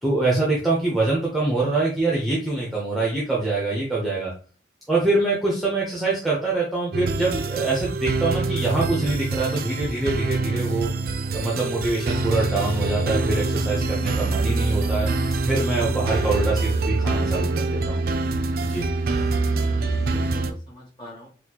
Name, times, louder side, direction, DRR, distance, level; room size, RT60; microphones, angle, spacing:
voice 1, 0.0-4.3 4.9-10.9 11.3-15.1 15.4-18.0 18.6-18.9, right 2 dB, ahead, -5 dB, 0.6 m, -24 dB
sound 1, 6.9-20.5, right 3 dB, 50° right, 0.3 m, -25 dB
voice 2, 19.6-21.3, left 1 dB, 25° left, -5 dB, 1.5 m, -44 dB
4.1 x 2.3 x 2.8 m, 0.39 s
head